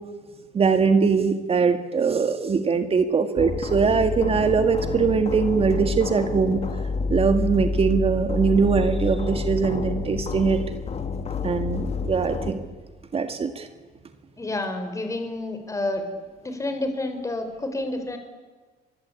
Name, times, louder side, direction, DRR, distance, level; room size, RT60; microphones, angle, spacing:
voice 1, 0.5-6.6 7.1-10.6 11.4-12.7 13.1-13.7, right 5 dB, 35° right, 8 dB, 1.9 m, -22 dB
sound 1, 3.4-12.5, left 4 dB, 40° left, 2.7 m, -28 dB
voice 2, 14.4-16.1 16.4-18.2, left 2 dB, 20° left, 7 dB, 4.4 m, -29 dB
28.5 x 24.0 x 8.6 m, 1.4 s
cardioid pair, 110°, 17 cm